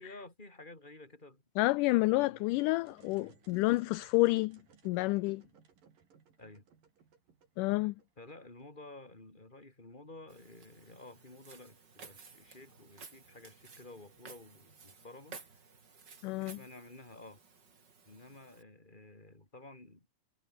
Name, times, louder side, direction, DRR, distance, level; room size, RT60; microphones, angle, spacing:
voice 1, 0.0-1.8 2.2-2.7 3.1-3.4 6.4-6.7 8.2-15.6 16.4-17.4 18.0-20.1, left 2 dB, 15° left, 4.8 m, -52 dB
voice 2, 1.6-4.6 4.9-5.4 7.6-8.0 16.2-16.6, left 21 dB, 80° left, 2.0 m, -29 dB
sound 1, 2.8-8.6, right 6 dB, 75° right, 5.6 m, -64 dB
Walk footsteps, 10.3-18.6, right 5 dB, 30° right, 3.3 m, -55 dB
omnidirectional pair, 4.0 m